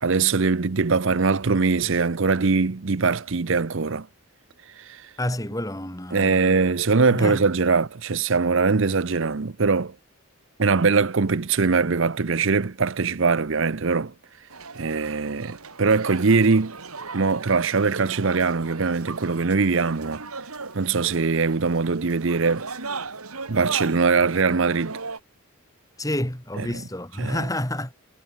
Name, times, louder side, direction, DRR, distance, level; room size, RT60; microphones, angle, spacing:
voice 1, 0.0-4.1 6.1-9.9 10.6-14.1 14.8-16.8 17.1-20.2 20.7-22.6 23.5-25.0 27.2-27.4, right 4 dB, 60° right, 0.7 m, -22 dB
voice 2, 5.2-6.6 7.1-7.5 26.0-27.9, left 1 dB, 15° left, 2.9 m, -29 dB
sound 1, 14.5-25.2, right 4 dB, 85° right, 3.1 m, -37 dB
head